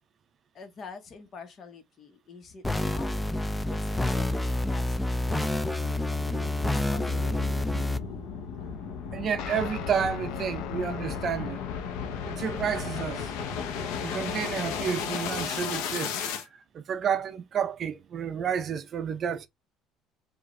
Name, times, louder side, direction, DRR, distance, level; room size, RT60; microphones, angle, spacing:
voice 1, 0.5-3.3 3.7-5.0 5.3-6.6 6.9-7.8, left 5 dB, 40° left, 1.2 m, -46 dB
sound 1, 2.6-8.0, left 1 dB, 10° left, 0.4 m, -28 dB
sound 2, 5.1-16.4, left 6 dB, 85° left, 0.9 m, -35 dB
voice 2, 9.1-11.6 12.3-13.3 14.0-19.5, right 7 dB, 40° right, 0.5 m, -31 dB
sound 3, 9.4-14.5, left 12 dB, 70° left, 0.5 m, -41 dB
5.0 x 2.6 x 3.2 m
cardioid pair, 125°, 0 cm